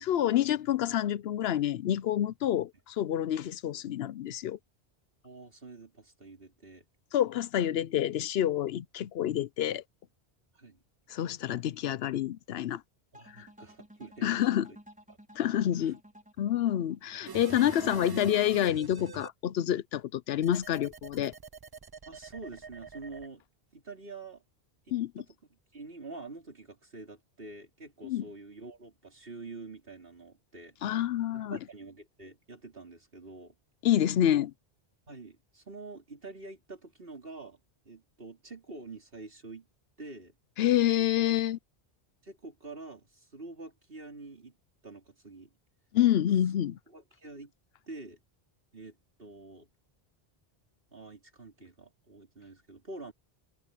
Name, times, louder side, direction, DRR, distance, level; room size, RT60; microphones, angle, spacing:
voice 1, 0.0-4.6 7.1-9.8 11.1-12.8 13.4-13.5 14.2-14.7 15.4-16.0 16.4-21.3 24.9-25.1 28.0-28.2 30.8-31.6 33.8-34.5 40.6-41.6 45.9-46.8, left 11 dB, 75° left, 0.8 m, -28 dB
voice 2, 5.2-6.8 10.5-10.8 13.1-14.8 15.1-15.2 15.8-15.9 22.1-23.4 23.7-24.4 25.2-30.8 31.3-33.5 35.1-37.6 37.9-39.7 40.0-40.4 42.2-44.6 44.8-45.5 46.9-47.5 47.9-48.2 48.7-49.7 50.9-53.1, right 3 dB, 60° right, 4.1 m, -47 dB
sound 1, 13.1-18.2, equal, 5° right, 4.7 m, -56 dB
sound 2, 17.3-19.3 20.4-23.3, right 6 dB, 35° right, 0.4 m, -44 dB
omnidirectional pair, 1.1 m